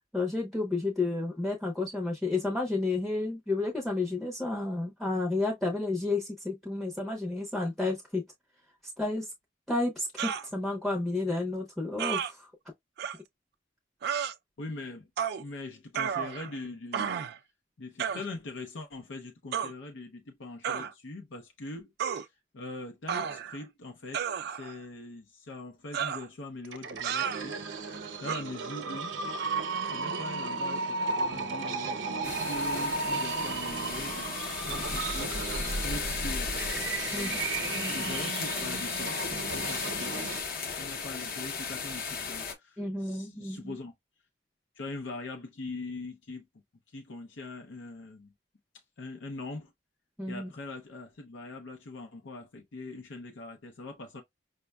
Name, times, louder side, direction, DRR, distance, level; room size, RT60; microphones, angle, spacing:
voice 1, 0.1-8.3 9.0-9.3 9.7-12.5 37.1-37.4 37.7-38.1 42.8-43.8 50.2-50.5, left 2 dB, ahead, 0.6 m, -31 dB
sound 1, 10.2-10.5 12.0-12.3 13.0-13.2 14.0-14.3 15.2-15.4 15.9-16.6 16.9-17.4 18.0-18.3 19.5-19.7 20.6-20.9 22.0-22.2 23.1-23.6 24.1-24.8 25.9-26.3 27.0-27.4 28.3-28.4, right 8 dB, 60° right, 0.3 m, -32 dB
voice 2, 14.6-15.1 15.4-17.2 17.8-27.5 28.2-29.2 29.8-35.4 35.8-36.7 37.1-37.5 37.9-39.2 39.5-40.3 40.8-43.9 44.8-46.5 46.9-48.3 48.7-49.7 50.3-54.2, left 2 dB, 85° left, 0.6 m, -42 dB
sound 2, 26.6-40.4, right 4 dB, 80° right, 0.7 m, -34 dB
sound 3, 32.2-42.5, left 5 dB, 55° left, 0.8 m, -35 dB
5.1 x 2.2 x 2.2 m
head